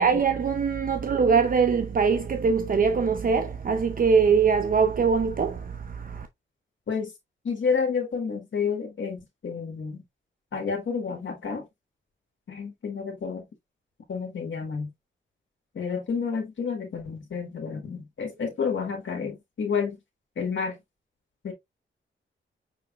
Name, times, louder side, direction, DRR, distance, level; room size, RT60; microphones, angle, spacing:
voice 1, 0.0-6.3, right 5 dB, 45° right, 0.6 m, -22 dB
voice 2, 7.4-10.0 10.5-11.6 12.5-13.5 14.1-14.9 15.7-20.0 20.4-20.8 21.4-21.5, left 5 dB, 70° left, 1.5 m, -30 dB
6.3 x 3.4 x 2.4 m
wide cardioid pair, 115°, 20 cm